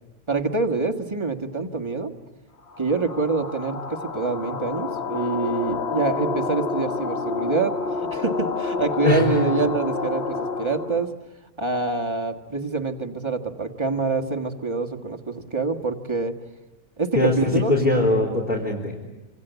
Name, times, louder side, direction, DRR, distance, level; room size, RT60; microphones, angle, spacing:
voice 1, 0.3-2.1 2.8-11.1 11.6-16.4 17.0-17.7, right 3 dB, 25° right, 3 dB, 1.6 m, -26 dB
sound 1, 2.7-11.1, left 4 dB, 60° left, 1.4 m, -29 dB
voice 2, 9.0-9.4 17.1-18.9, left 2 dB, 40° left, -4 dB, 3.8 m, -21 dB
27.5 x 26.5 x 8.2 m, 1.1 s
omnidirectional pair, 1.2 m